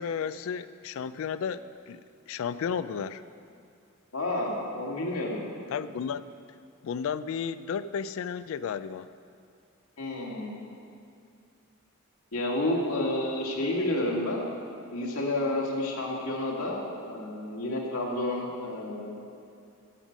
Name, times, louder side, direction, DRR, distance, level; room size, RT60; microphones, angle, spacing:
voice 1, 0.0-2.0 2.3-3.2 5.7-6.2 6.8-9.1, left 7 dB, 70° left, 13 dB, 0.3 m, -33 dB
voice 2, 4.1-5.5 10.0-10.5 12.3-14.5 14.9-19.1, left 1 dB, 85° left, -2 dB, 2.0 m, -30 dB
13.5 x 8.0 x 5.1 m, 2.4 s
head